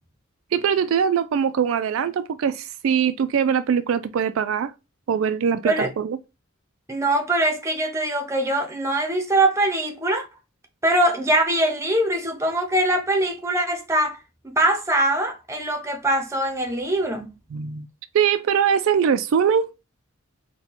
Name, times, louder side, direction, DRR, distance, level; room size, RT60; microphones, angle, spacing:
voice 1, 0.5-4.7 5.1-6.2 17.5-17.9 18.1-19.7, right 7 dB, 70° right, 0.3 m, -22 dB
voice 2, 6.9-10.3 10.8-14.2 14.5-17.3, right 1 dB, 15° right, 0.7 m, -22 dB
4.3 x 2.3 x 4.1 m
head